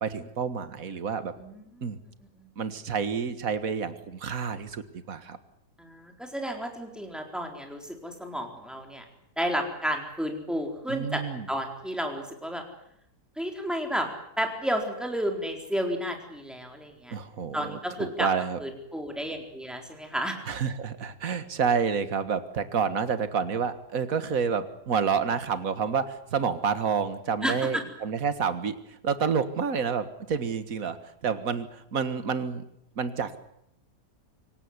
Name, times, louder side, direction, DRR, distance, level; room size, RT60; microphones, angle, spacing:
voice 1, 0.0-1.3 1.8-2.0 2.6-5.4 10.9-11.5 17.1-18.6 20.5-28.8 29.0-31.0 31.2-32.6 33.0-33.3, right 6 dB, 55° right, 11 dB, 2.0 m, -29 dB
voice 2, 5.8-9.0 9.4-11.2 11.5-12.6 13.4-14.1 14.4-17.1 17.5-18.3 18.6-20.4 27.4-27.8, equal, ahead, 3 dB, 4.1 m, -31 dB
25.5 x 17.5 x 9.7 m, 0.76 s
omnidirectional pair, 1.8 m